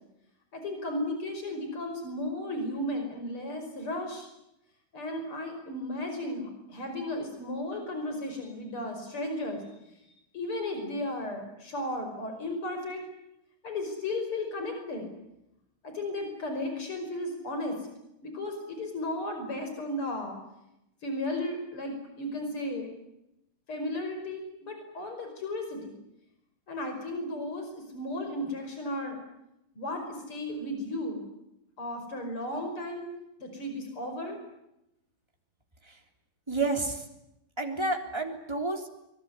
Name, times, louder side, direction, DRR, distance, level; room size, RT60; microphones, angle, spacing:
voice 1, 0.5-4.3 4.9-9.6 10.3-13.0 13.6-15.1 15.8-17.8 18.2-20.4 21.0-22.9 23.7-26.0 26.7-29.2 29.8-31.2 31.8-33.1 33.4-34.4, left 1 dB, 90° left, 5 dB, 6.3 m, -34 dB
voice 2, 36.5-37.0 37.6-38.9, right 3 dB, 10° right, 3 dB, 3.5 m, -30 dB
25.0 x 23.0 x 9.8 m, 0.86 s
omnidirectional pair, 2.3 m